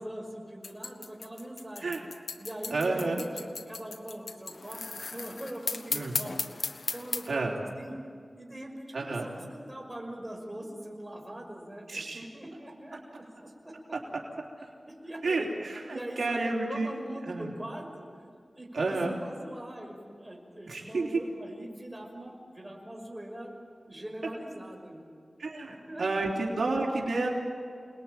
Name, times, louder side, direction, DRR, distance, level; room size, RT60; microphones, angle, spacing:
voice 1, 0.0-1.9 2.4-8.0 8.4-13.7 14.9-15.5 15.9-18.3 18.5-23.6 23.9-25.1 25.7-26.5, right 1 dB, 15° right, 1 dB, 6.0 m, -42 dB
sound 1, 0.6-7.3, left 4 dB, 85° left, 1.3 m, -36 dB
voice 2, 2.7-3.2 5.9-6.1 7.3-7.6 8.9-9.3 11.9-12.2 15.2-16.9 17.3-17.5 18.7-19.1 20.7-21.2 25.4-25.7 26.0-27.3, right 3 dB, 85° right, -1 dB, 3.5 m, -30 dB
28.5 x 20.5 x 9.1 m, 2.3 s
wide cardioid pair, 65°, 0 cm